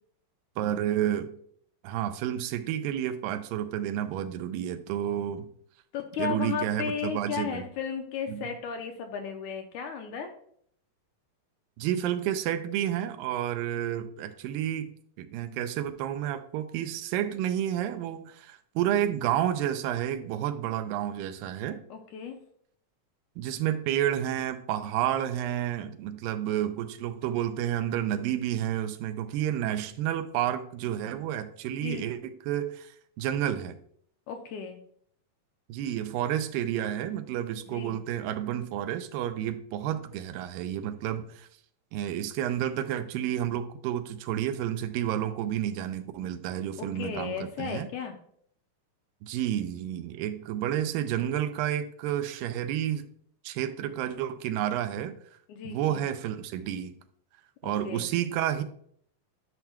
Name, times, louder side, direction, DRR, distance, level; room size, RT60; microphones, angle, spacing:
voice 1, 0.6-1.3 1.8-5.5 6.2-7.7 8.3-8.5 11.8-21.8 23.4-33.8 35.7-41.5 41.9-47.9 49.2-53.1 53.4-55.2 55.7-56.9 57.6-58.6, right 11 dB, 90° right, 9 dB, 2.3 m, -30 dB
voice 2, 5.9-10.3 21.9-22.4 31.8-32.1 34.3-34.8 37.7-38.0 46.8-48.2 55.5-56.1 57.6-58.1, left 7 dB, 80° left, 4 dB, 1.8 m, -35 dB
11.0 x 5.7 x 2.2 m, 0.63 s
omnidirectional pair, 3.9 m